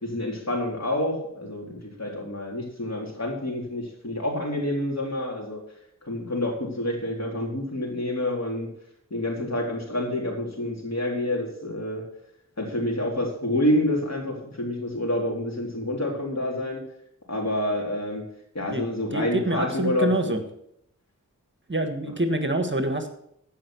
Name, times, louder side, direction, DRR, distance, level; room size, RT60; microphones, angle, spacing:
voice 1, 0.0-5.6 6.0-8.7 9.1-12.0 12.6-16.8 17.3-18.3 18.5-20.4, left 1 dB, 55° left, -1 dB, 3.9 m, -28 dB
voice 2, 19.1-20.4 21.7-23.1, right 1 dB, 35° right, 6 dB, 1.6 m, -26 dB
15.0 x 5.6 x 6.2 m, 0.73 s
wide cardioid pair, 50°, 32 cm